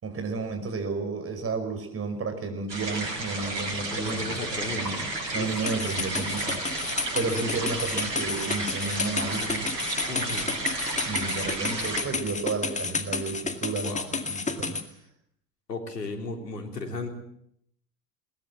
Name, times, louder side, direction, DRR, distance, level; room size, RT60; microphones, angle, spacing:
voice 1, 0.0-4.4 4.7-6.8 7.1-9.7 11.1-14.8, right 4 dB, 30° right, 7 dB, 5.4 m, -32 dB
sound 1, 2.7-12.0, right 2 dB, 80° right, 6.4 m, -32 dB
voice 2, 3.9-5.5 7.2-7.6 10.1-10.6 13.8-14.1 15.7-17.1, left 3 dB, 80° left, 5 dB, 3.9 m, -36 dB
sound 2, 5.6-14.8, left 4 dB, 15° left, 2.2 m, -31 dB
21.5 x 20.0 x 7.5 m, 0.72 s
figure-of-eight pair, 80°, 48 cm